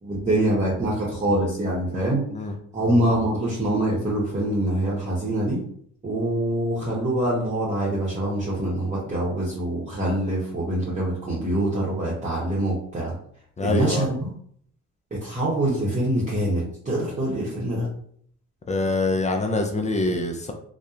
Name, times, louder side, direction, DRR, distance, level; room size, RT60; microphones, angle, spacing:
voice 1, 0.0-2.2 2.7-5.6 6.0-13.1 13.6-14.3 15.1-17.9, right 1 dB, 25° right, -6 dB, 0.8 m, -24 dB
voice 2, 13.6-14.0 18.7-20.5, left 2 dB, 25° left, 4 dB, 0.3 m, -24 dB
2.7 x 2.1 x 2.4 m, 0.63 s
cardioid pair, 90°, 30 cm